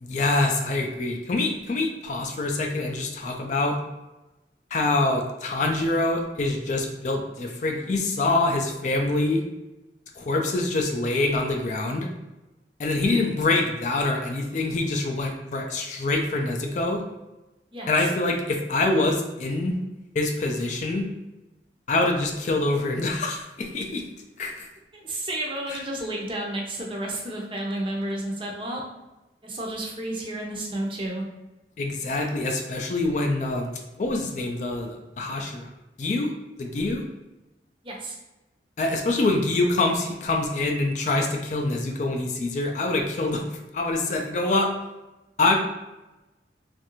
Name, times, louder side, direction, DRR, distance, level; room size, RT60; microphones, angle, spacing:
voice 1, 0.0-3.8 4.7-9.4 10.2-12.1 12.8-17.0 17.9-19.8 20.2-21.1 21.9-24.0 24.4-24.7 31.8-33.7 34.0-35.7 36.0-36.3 36.6-37.0 38.8-43.4 43.7-44.7 45.4-45.5, left 2 dB, 45° left, 3 dB, 0.4 m, -25 dB
voice 2, 17.7-18.1 24.9-28.8 29.4-31.2 37.8-38.2, right 1 dB, 30° right, -1 dB, 0.5 m, -31 dB
3.1 x 2.5 x 2.9 m, 1.0 s
head